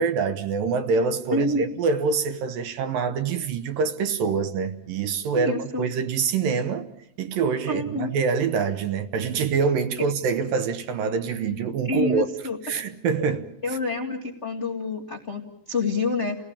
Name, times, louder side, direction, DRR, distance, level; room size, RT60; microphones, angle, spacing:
voice 1, 0.0-6.9 7.2-12.3 12.6-13.8, right 5 dB, 70° right, 2.5 m, -25 dB
voice 2, 1.3-1.6 5.4-5.8 7.7-8.2 11.9-12.6 13.6-16.4, left 2 dB, 45° left, 0.9 m, -27 dB
29.5 x 17.5 x 8.6 m
omnidirectional pair, 4.6 m